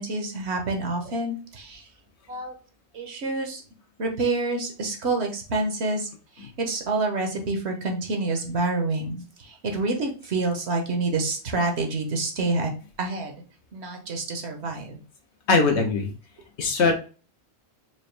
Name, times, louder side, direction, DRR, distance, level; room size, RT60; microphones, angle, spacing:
voice 1, 0.0-1.8 2.3-2.5 2.9-3.6 4.0-6.1 6.4-12.7 13.0-13.4 13.7-15.0 16.8-16.9, right 3 dB, 75° right, 3 dB, 1.2 m, -27 dB
voice 2, 15.5-16.1 16.6-16.9, left 4 dB, 75° left, 3 dB, 1.2 m, -20 dB
4.6 x 2.6 x 3.2 m, 0.36 s
omnidirectional pair, 1.1 m